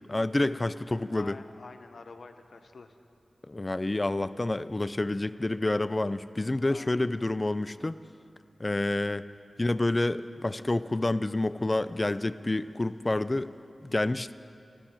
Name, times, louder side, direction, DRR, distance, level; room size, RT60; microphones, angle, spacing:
voice 1, 0.1-1.4 3.5-8.0 8.6-9.3 9.6-13.5 13.8-14.3, left 2 dB, 30° left, 14 dB, 0.4 m, -28 dB
voice 2, 1.0-2.9 6.6-6.9, left 4 dB, 75° left, 8 dB, 0.7 m, -48 dB
14.0 x 7.0 x 9.9 m, 2.6 s
cardioid pair, 50°, 0 cm